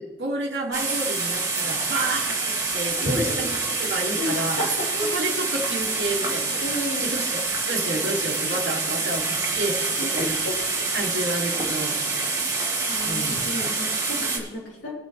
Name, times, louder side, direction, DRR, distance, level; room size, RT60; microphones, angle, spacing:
voice 1, 0.0-4.7 5.1-6.6 7.0-10.4 10.9-12.0 13.0-13.5, right 2 dB, 65° right, -4 dB, 1.4 m, -30 dB
sound 1, 0.7-14.4, right 3 dB, 20° right, 2.0 m, -26 dB
voice 2, 4.1-5.2 6.6-7.1 10.0-10.3 10.7-10.8 12.9-14.9, left 1 dB, 80° left, -3 dB, 3.3 m, -31 dB
21.5 x 8.1 x 3.3 m, 1.3 s
head